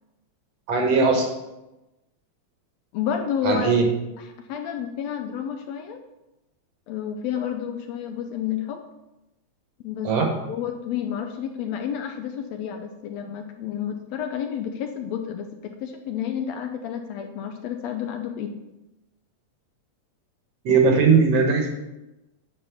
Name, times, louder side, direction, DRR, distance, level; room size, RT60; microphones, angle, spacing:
voice 1, 0.7-1.3 3.4-3.8 10.0-10.3 20.7-21.7, right 4 dB, 60° right, 3 dB, 2.0 m, -19 dB
voice 2, 2.9-3.7 4.2-6.0 6.9-8.8 9.8-10.1 10.5-18.5, left 8 dB, 75° left, 5 dB, 1.7 m, -30 dB
9.4 x 4.4 x 7.1 m, 0.98 s
omnidirectional pair, 3.4 m